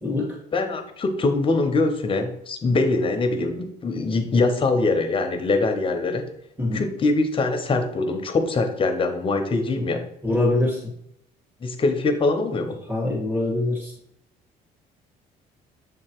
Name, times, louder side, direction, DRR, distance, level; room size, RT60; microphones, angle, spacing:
voice 1, 0.0-0.4 6.6-6.9 10.2-10.8 12.9-13.9, left 2 dB, 10° right, -2 dB, 1.6 m, -23 dB
voice 2, 0.5-6.3 6.7-10.0 11.6-12.8, left 3 dB, 30° left, 6 dB, 0.9 m, -23 dB
7.2 x 3.0 x 4.4 m, 0.73 s
cardioid pair, 110°, 17 cm